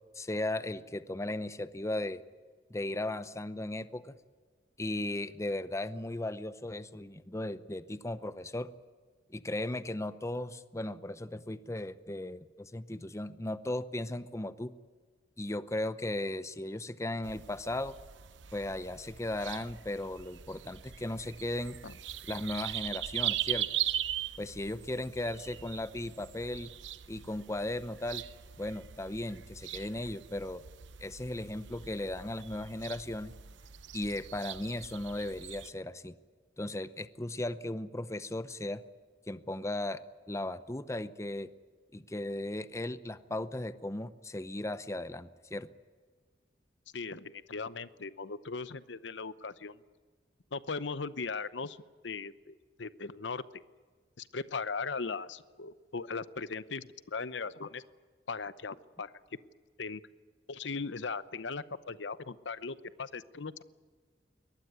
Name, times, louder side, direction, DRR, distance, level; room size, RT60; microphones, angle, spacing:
voice 1, 0.1-2.2 2.7-4.1 4.8-8.7 9.3-14.7 15.4-18.0 18.5-21.8 22.3-23.7 24.4-26.7 27.1-28.2 28.6-30.6 31.0-33.3 33.9-36.1 36.6-38.8 39.3-40.0 40.3-41.5 41.9-45.7, left 1 dB, 15° left, 14 dB, 0.7 m, -36 dB
sound 1, 17.2-35.7, right 11 dB, 80° right, 0.9 m, -40 dB
voice 2, 46.9-49.8 50.5-51.8 52.0-53.4 54.2-57.8 58.3-59.1 59.8-60.0 60.5-63.6, left 4 dB, 75° left, 15 dB, 0.8 m, -38 dB
22.5 x 19.5 x 9.6 m, 1.5 s
head